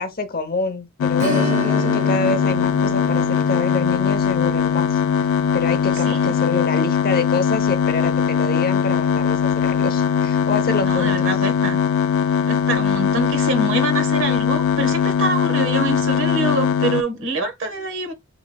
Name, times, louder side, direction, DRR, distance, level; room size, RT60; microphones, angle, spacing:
voice 1, 0.0-5.3 5.5-11.3, left 3 dB, 45° left, 0.8 m, -27 dB
sound 1, 1.0-17.0, left 7 dB, 70° left, 0.3 m, -20 dB
Strum, 1.2-10.4 10.7-10.8 13.3-13.5 14.0-14.1, right 1 dB, 35° right, 1.1 m, -33 dB
voice 2, 5.9-6.3 10.8-11.8 12.5-18.1, right 2 dB, 65° right, 1.3 m, -25 dB
5.9 x 3.0 x 2.3 m
head